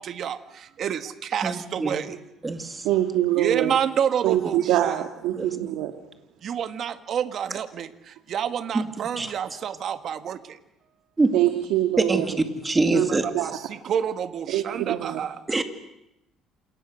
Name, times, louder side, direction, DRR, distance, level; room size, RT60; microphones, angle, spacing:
voice 1, 0.0-2.2 3.3-5.0 6.4-7.9 8.3-10.6 12.9-15.4, right 8 dB, 45° right, 10 dB, 1.6 m, -29 dB
voice 2, 1.4-2.0 2.4-2.9 5.3-5.6 8.7-8.8 9.2-9.3 11.2-11.4 12.1-12.3 12.6-13.3 15.5-15.6, right 3 dB, 15° right, 7 dB, 2.2 m, -24 dB
voice 3, 2.8-3.7 4.2-5.9 11.3-12.2 12.9-13.1 13.3-13.5 14.5-15.2, right 13 dB, 80° right, 6 dB, 2.0 m, -24 dB
28.5 x 28.0 x 6.4 m, 0.88 s
cardioid pair, 145°, 0 cm